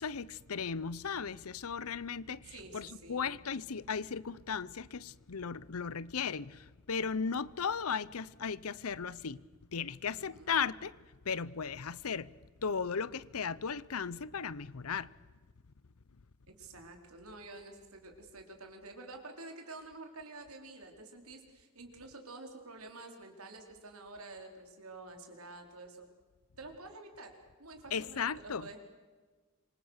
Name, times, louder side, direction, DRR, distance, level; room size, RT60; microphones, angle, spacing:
voice 1, 0.0-9.4 9.7-11.0 11.2-12.3 12.6-15.1 27.9-28.7, left 6 dB, 85° left, 0.8 m, -36 dB
voice 2, 2.5-3.3 10.1-10.6 16.5-26.1 26.6-28.8, right 2 dB, 85° right, 4.5 m, -49 dB
27.0 x 25.0 x 6.6 m
head